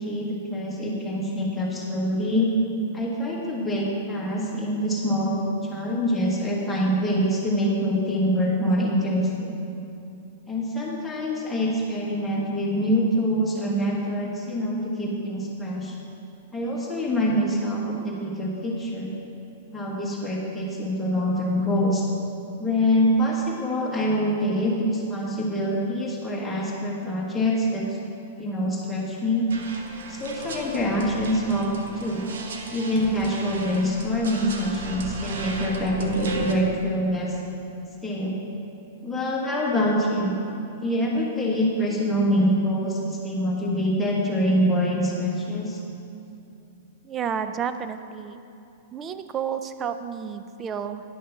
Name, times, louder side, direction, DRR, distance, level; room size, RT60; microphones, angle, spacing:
voice 1, 0.0-2.5 2.9-9.6 10.5-15.9 16.5-19.1 19.7-22.1 22.6-28.0 28.4-29.5 30.1-32.3 32.7-37.4 38.0-38.4 39.0-40.4 40.8-45.8, equal, 5° left, -5 dB, 1.4 m, -25 dB
sound 1, 29.5-36.5, right 3 dB, 90° right, 1.0 m, -35 dB
voice 2, 47.0-48.4 48.9-51.0, right 7 dB, 20° right, 10 dB, 0.4 m, -31 dB
10.5 x 6.6 x 5.6 m, 2.7 s
supercardioid pair, 165°, 0 cm